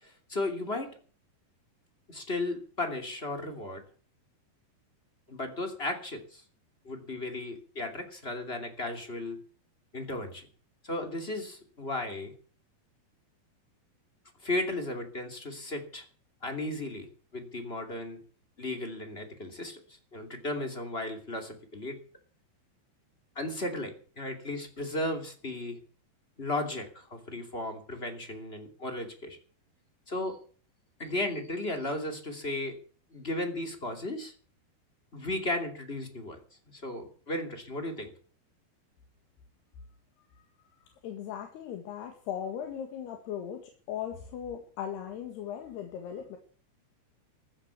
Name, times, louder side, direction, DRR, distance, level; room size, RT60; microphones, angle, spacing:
voice 1, 0.0-1.0 2.1-3.8 5.3-6.4 6.8-9.4 9.9-10.5 10.8-12.3 14.4-16.0 16.4-18.2 18.6-22.0 23.3-25.8 26.4-29.4 30.1-30.4 31.0-32.8 33.1-34.3 35.1-36.4 36.7-38.1, left 2 dB, 20° left, 5 dB, 2.2 m, -35 dB
voice 2, 41.0-46.4, left 9 dB, 75° left, 4 dB, 3.8 m, -38 dB
14.5 x 10.0 x 8.3 m, 0.42 s
omnidirectional pair, 4.8 m